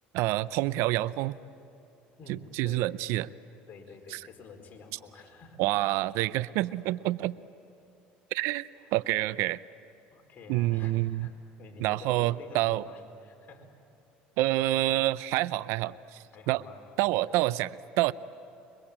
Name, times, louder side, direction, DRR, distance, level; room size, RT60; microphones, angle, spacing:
voice 1, 0.1-1.4 2.3-3.3 4.1-4.2 5.6-7.4 8.3-9.6 10.5-11.3 11.8-12.9 14.4-16.6 17.0-18.1, right 17 dB, 75° right, 18 dB, 0.5 m, -28 dB
voice 2, 2.2-2.9 3.7-5.6 10.1-13.7 16.3-17.0 17.3-17.4, left 3 dB, 40° left, 2 dB, 4.7 m, -49 dB
27.0 x 23.0 x 8.7 m, 2.8 s
supercardioid pair, 90°, 4 cm